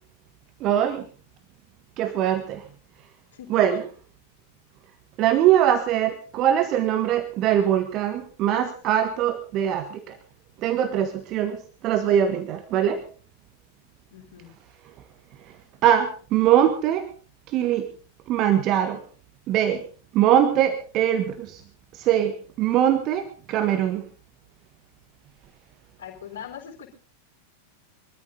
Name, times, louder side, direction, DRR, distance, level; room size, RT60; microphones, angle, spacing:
voice 1, 0.6-1.1 2.0-2.6 3.5-3.8 5.2-10.2 10.6-13.0 15.8-17.1 17.5-17.9 18.3-19.0 19.5-19.9 20.1-21.6 21.9-24.0, right 10 dB, 35° right, 9 dB, 1.6 m, -22 dB
voice 2, 3.3-3.8 14.1-14.5 26.0-26.9, left 9 dB, 60° left, -3 dB, 4.2 m, -41 dB
23.5 x 13.5 x 3.9 m, 0.36 s
figure-of-eight pair, 90°, 0 cm